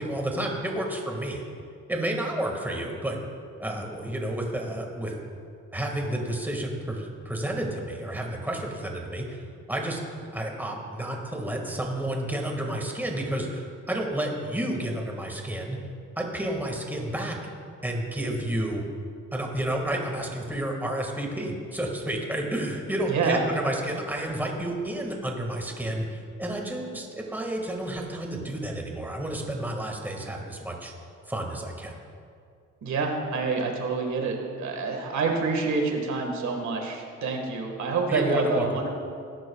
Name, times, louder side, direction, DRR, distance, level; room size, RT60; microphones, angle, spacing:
voice 1, 0.0-1.4 1.9-3.2 3.6-5.1 5.7-10.0 10.3-15.8 16.2-17.4 17.8-18.8 19.3-30.9 31.3-31.9 38.1-38.6, right 1 dB, 5° right, 1 dB, 1.8 m, -30 dB
voice 2, 23.1-23.4 32.8-38.9, right 4 dB, 70° right, 2 dB, 1.7 m, -27 dB
17.5 x 11.0 x 2.4 m, 2.3 s
cardioid pair, 90°, 30 cm